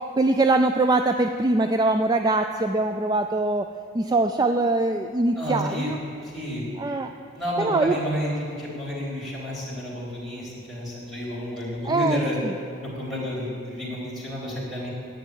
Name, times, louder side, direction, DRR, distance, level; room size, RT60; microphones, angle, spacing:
voice 1, 0.0-6.0 6.8-7.1 7.6-8.0 11.8-12.2, right 2 dB, 20° right, 7 dB, 0.3 m, -22 dB
voice 2, 5.4-5.9 6.2-6.7 7.3-12.4 12.9-14.9, equal, ahead, -8 dB, 3.9 m, -30 dB
10.5 x 9.3 x 8.6 m, 2.3 s
head